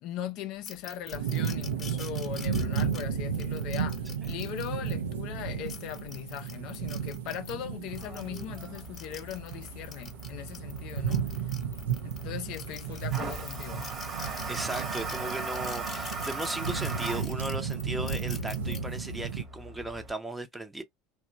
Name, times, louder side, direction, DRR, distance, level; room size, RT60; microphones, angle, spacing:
voice 1, 0.0-11.5 12.0-13.9, left 10 dB, 55° left, 0.4 m, -39 dB
sound 1, 0.7-4.9 5.5-7.5 7.9-12.2 12.5-18.8, left 5 dB, 30° left, 0.8 m, -45 dB
sound 2, 1.1-19.4, right 7 dB, 75° right, 0.4 m, -34 dB
Toilet flush, 7.9-20.1, right 3 dB, 35° right, 1.1 m, -40 dB
voice 2, 14.2-20.8, right 2 dB, 10° right, 0.6 m, -37 dB
2.9 x 2.1 x 2.4 m
hypercardioid pair, 75°, 0 cm